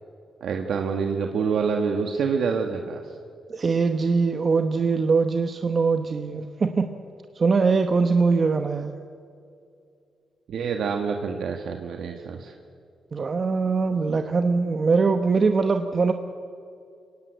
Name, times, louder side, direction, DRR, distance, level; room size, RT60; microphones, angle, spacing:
voice 1, 0.4-3.1 10.5-12.5, right 5 dB, 75° right, 3 dB, 1.5 m, -27 dB
voice 2, 3.5-6.9 7.3-9.0 13.1-16.1, right 4 dB, 40° right, 7 dB, 1.0 m, -22 dB
25.0 x 18.0 x 8.0 m, 2.4 s
cardioid pair, 115°, 0 cm